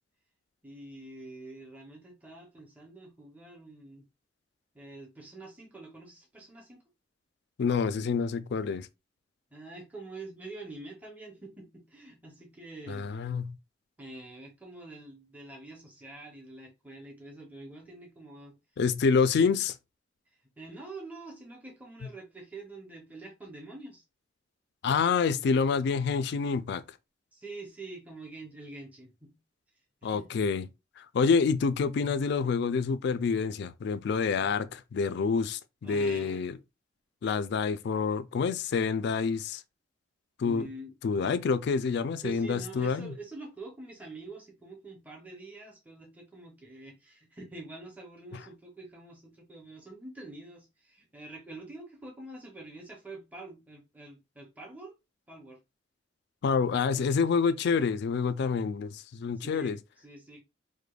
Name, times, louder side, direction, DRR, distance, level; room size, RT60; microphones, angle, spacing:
voice 1, 0.6-4.1 4.7-6.8 9.5-13.3 14.0-18.6 20.6-24.0 27.3-29.3 30.0-30.4 35.8-36.4 40.4-40.9 41.2-41.4 42.2-54.9 55.3-55.6 56.9-57.1 58.4-58.5 59.4-60.4, right 2 dB, 10° right, 0.7 m, -46 dB
voice 2, 7.6-8.9 12.9-13.5 18.8-19.7 24.8-26.8 30.0-30.7 31.0-36.5 37.2-39.6 40.4-40.6 41.0-43.1 56.4-59.8, left 5 dB, 65° left, 0.3 m, -27 dB
4.9 x 2.1 x 2.3 m
head